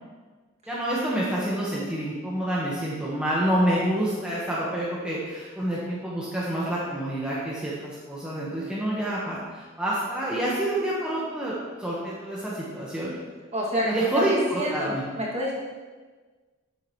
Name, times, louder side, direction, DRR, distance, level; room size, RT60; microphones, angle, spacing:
voice 1, 0.7-11.5 11.8-13.1 13.8-15.0, right 1 dB, 5° right, -8 dB, 1.4 m, -28 dB
voice 2, 13.5-15.5, equal, 30° right, -5 dB, 2.5 m, -28 dB
13.5 x 7.7 x 3.2 m, 1.4 s
head